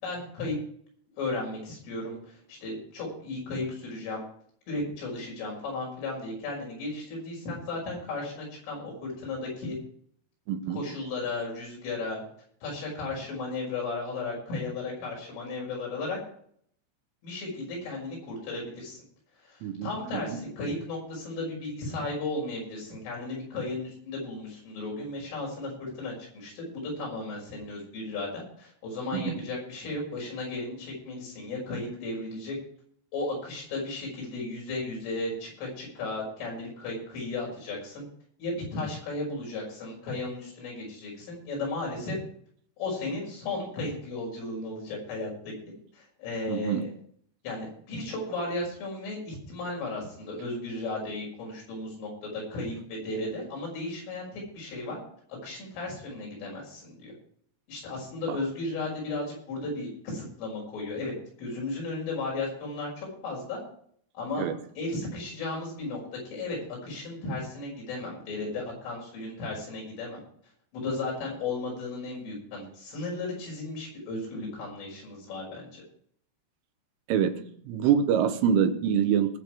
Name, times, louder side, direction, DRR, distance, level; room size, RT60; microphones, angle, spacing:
voice 1, 0.0-0.5 1.2-4.2 4.7-9.8 10.7-12.2 12.6-16.2 17.2-19.0 19.4-32.6 33.1-38.0 38.4-42.2 42.8-45.5 45.9-46.9 47.4-55.0 55.4-57.1 57.7-63.6 64.1-64.5 64.8-66.0 66.3-66.6 66.8-70.2 70.7-75.8, left 2 dB, 75° left, -2 dB, 8.5 m, -35 dB
voice 2, 10.5-10.8 19.6-19.9 20.3-20.4 29.1-29.4 46.5-46.9 58.3-58.4 64.4-64.6 77.1-79.4, right 8 dB, 85° right, 8 dB, 3.6 m, -25 dB
20.5 x 7.6 x 4.7 m, 0.62 s
omnidirectional pair, 5.7 m